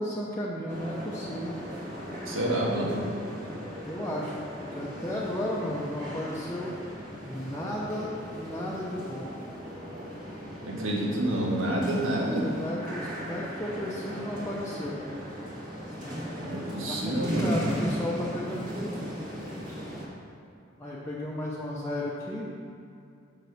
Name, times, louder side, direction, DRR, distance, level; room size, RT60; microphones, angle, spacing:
voice 1, 0.0-1.6 3.8-4.4 4.7-6.7 7.2-9.3 12.2-15.0 16.9-19.1 20.8-22.5, left 1 dB, 15° left, -6 dB, 0.7 m, -34 dB
sound 1, 0.7-20.1, equal, 40° right, 1.7 m, -37 dB
voice 2, 2.2-3.1 10.7-12.5 16.4-17.6, right 1 dB, 80° right, -3 dB, 1.7 m, -28 dB
6.4 x 5.6 x 6.8 m, 2.5 s
head